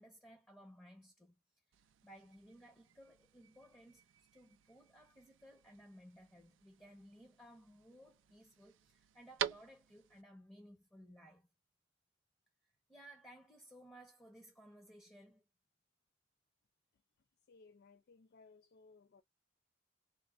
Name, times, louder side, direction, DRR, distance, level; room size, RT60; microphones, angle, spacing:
voice 1, 0.0-1.4 1.7-11.5 12.9-15.5, equal, 10° left, 0.8 m, -59 dB
sound 1, 1.7-10.2, right 10 dB, 85° right, 0.4 m, -49 dB
voice 2, 17.5-19.2, left 4 dB, 55° left, 0.3 m, -62 dB
4.3 x 2.3 x 2.4 m
head